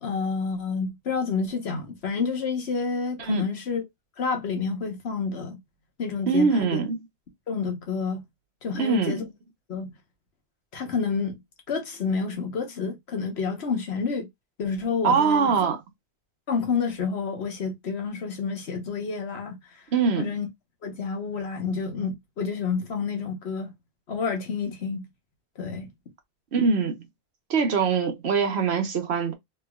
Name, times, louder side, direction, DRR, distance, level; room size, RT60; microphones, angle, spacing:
voice 1, 0.0-3.8 4.2-5.6 6.0-6.8 7.5-8.2 8.6-9.3 9.7-9.9 10.7-11.4 11.7-14.3 14.6-15.6 16.5-19.6 20.2-20.5 20.8-23.7 24.1-25.0 25.6-25.9, left 5 dB, 85° left, 1.3 m, -29 dB
voice 2, 6.3-7.0 8.7-9.3 15.0-15.8 19.9-20.3 26.5-27.0 27.5-29.3, right 5 dB, 85° right, 1.1 m, -23 dB
3.2 x 3.2 x 2.3 m
omnidirectional pair, 1.1 m